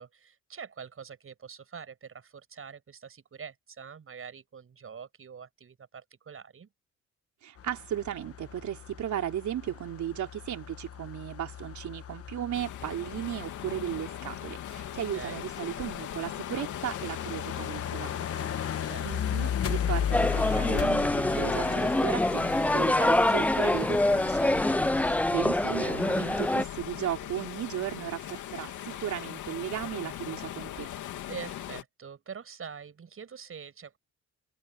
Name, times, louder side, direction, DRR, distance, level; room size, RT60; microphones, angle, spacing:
voice 1, 0.0-6.7 15.1-15.4 18.8-19.3 31.3-34.0, right 6 dB, 45° right, 7.9 m, -45 dB
voice 2, 7.4-24.6 25.0-30.9, right 11 dB, 70° right, 3.7 m, -36 dB
sound 1, 7.6-25.5, left 9 dB, 50° left, 1.3 m, -36 dB
sound 2, 12.5-31.8, left 12 dB, 80° left, 2.8 m, -40 dB
sound 3, 20.1-26.6, left 1 dB, 5° left, 0.5 m, -25 dB
cardioid pair, 90°, 30 cm